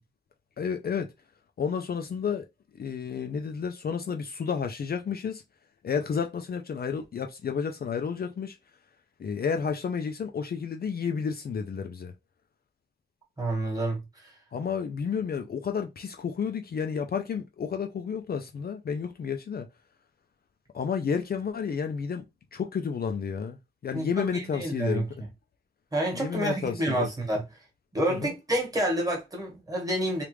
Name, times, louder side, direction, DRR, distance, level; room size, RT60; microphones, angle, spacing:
voice 1, 0.6-1.1 1.6-2.5 2.8-5.4 5.8-8.6 9.2-12.1 14.5-19.7 20.7-22.2 22.5-23.6 23.8-25.0 26.1-27.1 28.1-28.3, left 6 dB, 50° left, 0.4 m, -31 dB
voice 2, 13.4-14.4 23.9-25.0 25.9-27.4 27.9-30.2, right 1 dB, 20° right, 1.4 m, -29 dB
3.3 x 2.4 x 3.1 m
wide cardioid pair, 140°, 20 cm